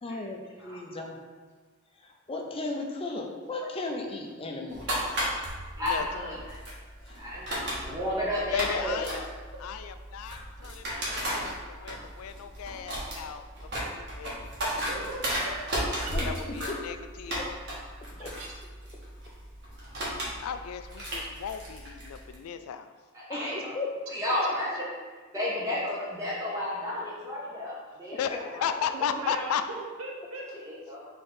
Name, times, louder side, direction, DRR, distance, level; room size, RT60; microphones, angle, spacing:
voice 1, 0.0-1.2 2.0-4.9 7.0-7.2 16.1-16.3 16.7-16.8 17.4-17.5 18.2-18.3 23.3-23.9, left 2 dB, 25° left, 1 dB, 0.5 m, -36 dB
sound 1, 4.7-22.3, equal, 55° right, 1.2 m, -35 dB
voice 2, 5.8-6.6 7.2-9.2 23.1-23.7 24.1-24.7 25.3-28.7 30.5-31.1, left 1 dB, 15° right, -6 dB, 0.6 m, -32 dB
voice 3, 8.5-9.3 9.6-14.4 14.6-15.0 16.3-17.5 20.4-22.9 28.2-28.3 28.6-29.6, left 8 dB, 85° left, 10 dB, 0.3 m, -35 dB
voice 4, 14.9-15.6 16.0-16.1 18.3-18.5 22.4-22.5 24.4-24.5 28.9-30.5, right 2 dB, 75° right, -1 dB, 0.9 m, -39 dB
3.7 x 3.3 x 4.3 m, 1.4 s
head